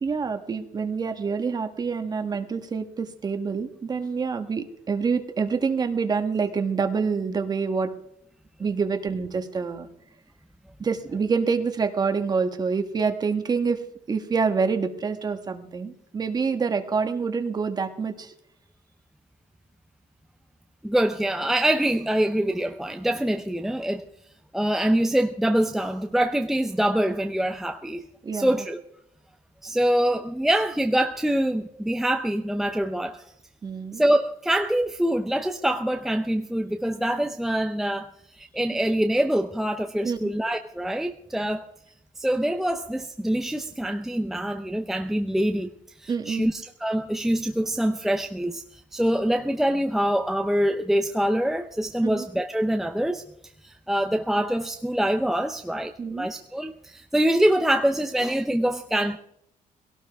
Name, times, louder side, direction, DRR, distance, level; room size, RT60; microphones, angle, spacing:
voice 1, 0.0-7.9 8.6-9.9 10.8-13.8 14.1-18.3 28.2-28.6 33.6-34.0 40.0-40.3 46.1-46.5 52.0-52.3 56.0-56.3, right 5 dB, 30° right, 1.4 m, -27 dB
voice 2, 20.8-24.1 24.5-28.1 28.3-28.8 29.6-33.2 33.9-38.1 38.4-41.6 42.2-45.7 46.0-53.2 53.6-59.2, right 1 dB, ahead, 0.6 m, -25 dB
21.5 x 17.5 x 3.5 m
cardioid pair, 150°, 14 cm